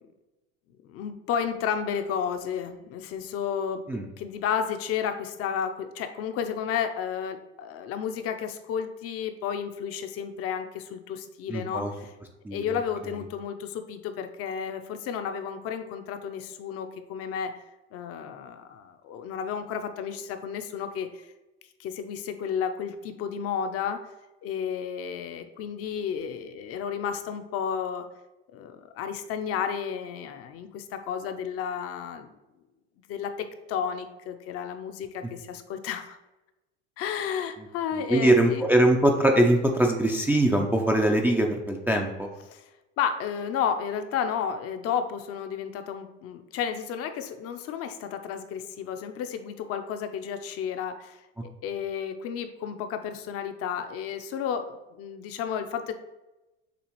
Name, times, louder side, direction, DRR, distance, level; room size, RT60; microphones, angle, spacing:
voice 1, 0.8-3.8 4.2-12.1 12.5-17.5 17.9-21.3 21.8-24.0 24.4-28.1 28.5-32.3 33.1-36.2 37.0-38.6 42.5-42.7 43.0-55.9, left 7 dB, 50° left, 8 dB, 0.5 m, -32 dB
voice 2, 11.5-11.9 12.4-12.6 38.1-42.3, right 1 dB, 5° right, 1 dB, 0.3 m, -22 dB
6.9 x 2.4 x 3.0 m, 1.0 s
supercardioid pair, 110°, 32 cm